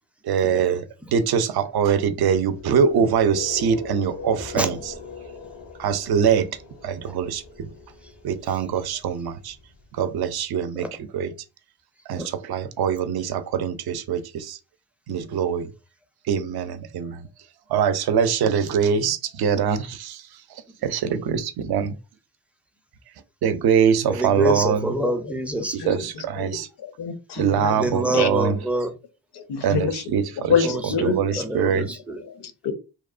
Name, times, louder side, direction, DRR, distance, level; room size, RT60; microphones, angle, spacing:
voice 1, 0.2-4.9 5.8-6.5 6.8-7.7 8.2-9.6 9.9-11.3 12.1-14.6 15.1-15.7 16.3-17.3 17.7-20.2 20.5-21.9 23.4-25.0 25.7-26.7 27.4-28.6 29.6-30.5 31.0-31.9, right 7 dB, 60° right, 0.5 m, -23 dB
sound 1, 2.1-10.1, left 5 dB, 85° left, 1.0 m, -41 dB
voice 2, 24.1-25.9 27.7-28.9 30.6-32.2, right 1 dB, 5° right, 0.5 m, -26 dB
voice 3, 25.0-25.3 25.8-28.6 29.3-31.7 32.2-32.7, left 6 dB, 65° left, 0.7 m, -28 dB
2.9 x 2.0 x 2.4 m
supercardioid pair, 55°, 44 cm